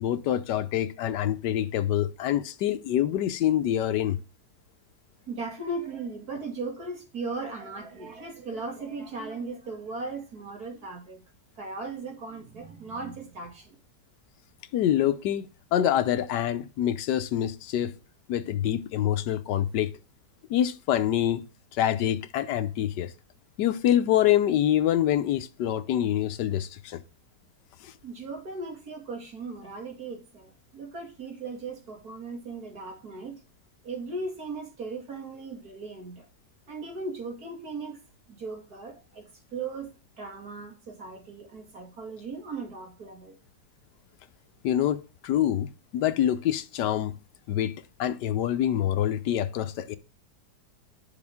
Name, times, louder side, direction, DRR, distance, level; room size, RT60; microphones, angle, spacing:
voice 1, 0.0-4.2 14.7-15.5 15.7-17.9 18.3-19.9 20.5-21.4 21.7-23.1 23.6-27.0 27.8-27.9 44.6-47.1 47.5-50.0, left 11 dB, 85° left, 1.3 m, -26 dB
voice 2, 5.3-11.2 11.6-13.8 28.0-33.4 33.8-36.2 36.7-38.0 38.3-43.4, right 3 dB, 60° right, 2.9 m, -37 dB
9.9 x 7.0 x 3.5 m
omnidirectional pair, 1.8 m